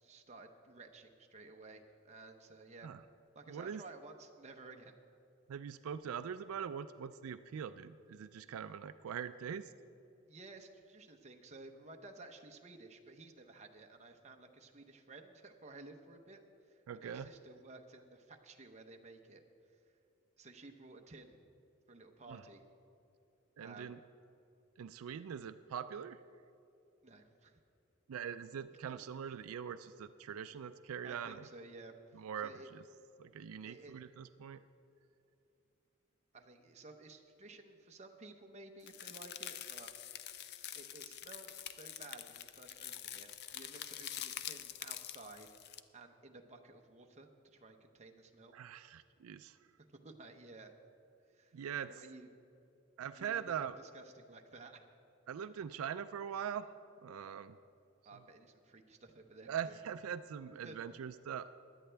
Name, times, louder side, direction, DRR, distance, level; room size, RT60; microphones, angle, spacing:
voice 1, 0.0-2.9 3.3-4.9 10.3-16.4 16.7-19.4 20.4-21.4 21.9-22.6 23.6-24.0 27.0-27.6 28.8-29.1 31.0-32.7 33.7-33.9 36.3-39.9 40.7-45.5 45.9-48.5 50.0-50.7 51.3-51.6 51.9-52.3 53.1-54.8 58.0-59.8 60.6-60.8, right 3 dB, 35° right, 4 dB, 0.8 m, -54 dB
voice 2, 3.5-3.8 5.5-9.7 16.9-17.3 22.3-22.4 23.6-24.0 24.8-26.2 28.1-31.5 32.1-32.8 33.2-34.6 48.5-49.6 51.5-51.9 53.0-53.8 55.3-56.7 57.0-57.6 59.5-61.5, right 8 dB, 85° right, 12 dB, 0.4 m, -42 dB
sound 1, 38.9-45.8, left 11 dB, 50° left, 0.4 m, -46 dB
16.5 x 11.0 x 3.4 m, 2.7 s
head